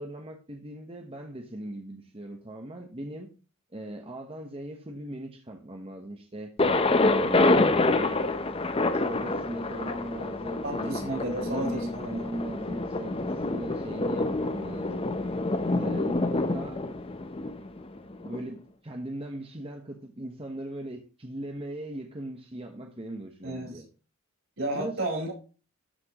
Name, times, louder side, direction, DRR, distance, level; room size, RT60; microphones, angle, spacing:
voice 1, 0.0-3.3 3.7-6.5 7.0-8.4 8.9-15.0 15.8-16.8 18.2-23.9 24.7-25.0, right 1 dB, 25° right, 1.1 m, -39 dB
Thunder, 6.6-18.4, left 2 dB, 25° left, 0.7 m, -27 dB
voice 2, 10.6-12.2 15.7-16.0 23.4-23.8 24.6-25.3, right 1 dB, 65° right, 4.6 m, -33 dB
12.5 x 5.9 x 3.0 m
head